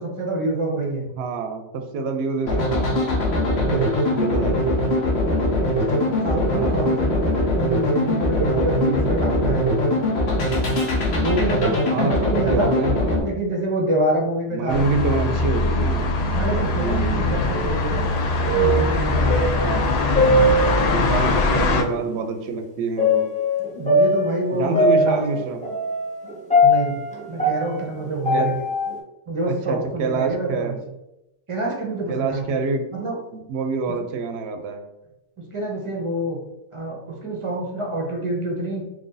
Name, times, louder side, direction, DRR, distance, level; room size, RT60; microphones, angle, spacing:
voice 1, 0.0-1.1 3.4-4.5 5.8-10.0 11.2-12.7 13.2-14.9 16.3-18.1 18.5-19.8 23.7-25.2 26.6-27.0 27.3-28.7 29.3-30.8 31.5-32.4 32.9-33.2 33.9-34.0 35.4-36.4 36.7-38.8, right 2 dB, 30° right, 0 dB, 0.6 m, -27 dB
voice 2, 1.2-2.9 4.1-4.6 6.5-6.9 11.9-13.0 14.5-16.1 16.7-17.3 19.6-20.2 20.9-23.3 24.6-25.6 28.3-28.5 29.5-30.8 32.1-32.8 33.3-34.8, right 4 dB, 70° right, 5 dB, 0.8 m, -26 dB
sound 1, 2.4-13.2, left 1 dB, 65° left, 1.0 m, -21 dB
sound 2, 14.7-21.8, left 3 dB, 90° left, 0.3 m, -22 dB
sound 3, 17.5-18.1 18.3-21.1 21.9-22.0 23.0-29.0, left 1 dB, 10° left, 0.5 m, -21 dB
3.1 x 2.6 x 3.8 m, 0.92 s
omnidirectional pair, 1.2 m